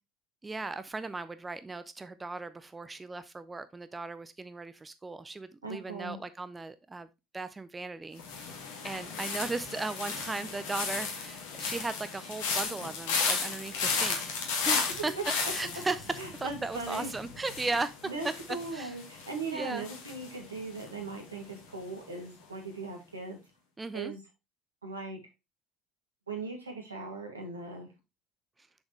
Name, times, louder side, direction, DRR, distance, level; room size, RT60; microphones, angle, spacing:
voice 1, 0.4-7.1 7.3-8.6 8.8-14.3 14.6-16.0 16.4-17.9 18.2-18.3 18.7-18.9 19.4-19.9 23.8-24.1, right 3 dB, 20° right, 0.6 m, -37 dB
voice 2, 5.6-6.2 15.0-15.2 16.2-17.1 17.7-23.4 23.9-24.2 24.8-25.2 26.3-27.9, right 3 dB, 85° right, 2.1 m, -39 dB
sound 1, 8.2-21.2 21.5-21.9, left 5 dB, 65° left, 2.0 m, -35 dB
7.0 x 6.4 x 3.1 m
figure-of-eight pair, 60°, 0 cm